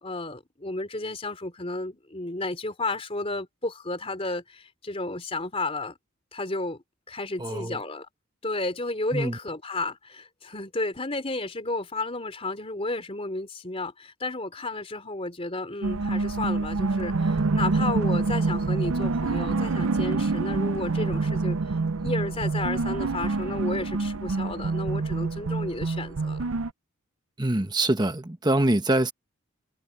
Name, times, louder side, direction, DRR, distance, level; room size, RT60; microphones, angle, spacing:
voice 1, 0.0-5.9 6.3-8.1 8.4-21.6 22.0-26.4, left 2 dB, 25° left, 3.5 m, -32 dB
voice 2, 7.4-7.8 9.1-9.4 27.4-29.1, right 1 dB, 20° right, 1.2 m, -24 dB
sound 1, 15.8-26.7, right 3 dB, 75° right, 0.6 m, -26 dB
head